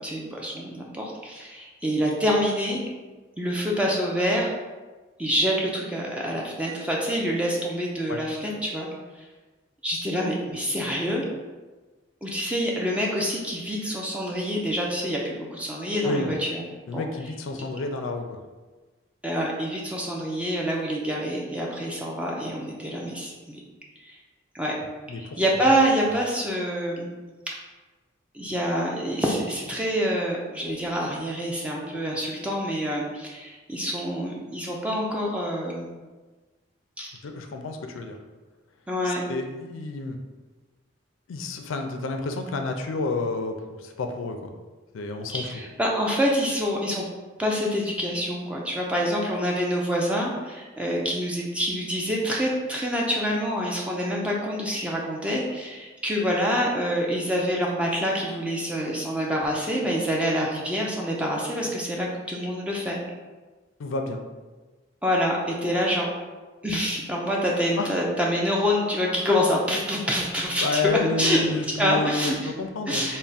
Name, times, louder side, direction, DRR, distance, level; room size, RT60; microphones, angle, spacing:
voice 1, 0.0-2.8 3.4-4.5 5.2-8.9 9.8-11.2 12.2-16.6 16.9-17.0 17.5-17.6 19.2-23.6 24.0-24.2 24.5-24.7 25.1-27.1 28.3-35.9 37.0-37.1 38.9-39.2 45.3-47.0 47.4-63.0 65.0-66.1 66.6-70.8 71.2-71.4 71.8-72.5 72.9-73.2, equal, 5° right, -3 dB, 0.4 m, -26 dB
voice 2, 16.9-18.4 25.1-25.4 37.2-38.2 39.0-40.2 41.3-44.4 44.9-45.4 63.8-64.2 67.8-67.9 70.6-73.2, left 3 dB, 80° left, 5 dB, 0.4 m, -30 dB
3.4 x 2.1 x 4.0 m, 1.3 s
head